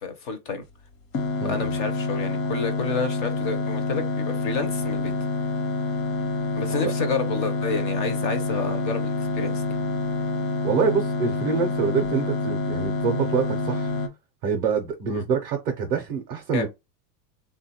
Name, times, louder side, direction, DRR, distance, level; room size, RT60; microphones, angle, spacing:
voice 1, 0.0-0.6 1.4-5.1 6.6-9.6 15.1-15.2 16.5-16.6, left 4 dB, 30° left, 0.4 m, -29 dB
sound 1, 1.1-14.1, left 3 dB, 75° left, 1.0 m, -27 dB
voice 2, 1.4-1.7 6.8-6.9 10.6-13.9 14.4-16.7, right 6 dB, 40° right, 0.4 m, -25 dB
3.3 x 2.2 x 2.7 m
supercardioid pair, 175°, 49 cm